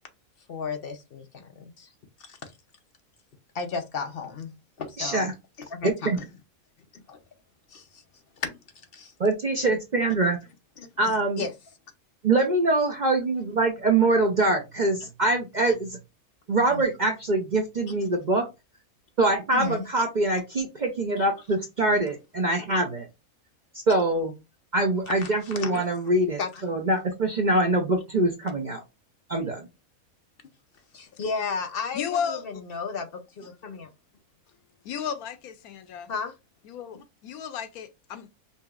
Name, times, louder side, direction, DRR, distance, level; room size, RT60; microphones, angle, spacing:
voice 1, 0.5-1.9 2.3-2.4 3.5-4.5 4.8-5.3 5.7-6.2 6.9-7.2 7.7-8.0 8.4-8.6 8.9-9.1 10.8-11.5 16.7-16.8 19.5-19.8 21.2-21.3 25.1-26.8 30.9-33.9 36.1-36.3, left 5 dB, 50° left, 0.8 m, -34 dB
voice 2, 5.0-5.3 5.8-6.2 9.2-10.4 11.0-11.4 12.2-16.0 16.5-18.5 19.2-23.1 23.9-24.3 24.7-28.8 29.3-29.7, right 2 dB, 45° right, 0.6 m, -24 dB
voice 3, 31.9-32.4 34.8-36.1 36.6-38.3, left 7 dB, 85° left, 1.1 m, -33 dB
5.3 x 2.8 x 2.4 m
omnidirectional pair, 1.5 m